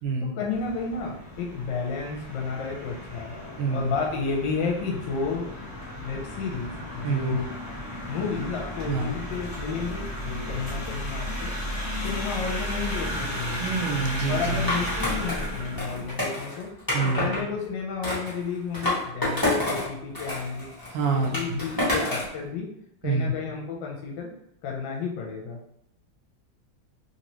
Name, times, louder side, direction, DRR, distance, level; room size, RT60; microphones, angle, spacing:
voice 1, 0.2-3.3 3.7-5.4 6.0-7.4 8.1-11.5 12.0-13.8 14.3-16.7 17.0-20.7 21.0-22.7 23.0-24.3 24.6-25.6, left 5 dB, 75° left, -1 dB, 1.2 m, -31 dB
sound 1, 0.5-16.1, equal, 40° left, 1.2 m, -34 dB
voice 2, 3.6-3.9 7.0-7.4 8.9-9.1 13.6-14.7 16.9-17.3 20.9-21.6 23.0-23.3, right 4 dB, 80° right, 2 dB, 1.3 m, -26 dB
Skateboard, 14.7-17.4 18.0-19.9 20.1-22.3, left 1 dB, 20° left, 0.6 m, -28 dB
3.2 x 2.8 x 2.9 m, 0.75 s
omnidirectional pair, 2.2 m